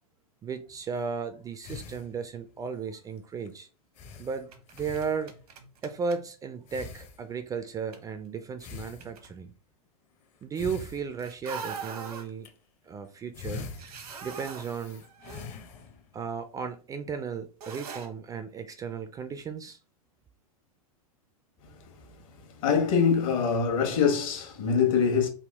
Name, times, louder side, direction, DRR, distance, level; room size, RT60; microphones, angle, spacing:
voice 1, 0.4-3.7 4.2-5.3 5.8-9.5 10.4-12.5 12.9-13.7 14.2-15.0 16.1-19.8, right 6 dB, 20° right, 0.4 m, -35 dB
sound 1, 0.7-1.0 1.6-2.6 3.0-3.2 3.4-3.5 4.0-5.6 6.7-7.6 8.6-9.6 10.4-11.7 12.2-12.5 13.0-16.2, left 5 dB, 35° left, 0.7 m, -44 dB
sound 2, 4.5-6.3 7.9-8.1 9.0-9.4 11.2-12.3 13.7-15.5 15.8-15.9 17.6-18.1, right 5 dB, 80° right, 0.9 m, -42 dB
voice 2, 22.5-25.3, left 6 dB, 60° left, 1.2 m, -24 dB
3.6 x 2.3 x 3.4 m
hypercardioid pair, 105°, 19 cm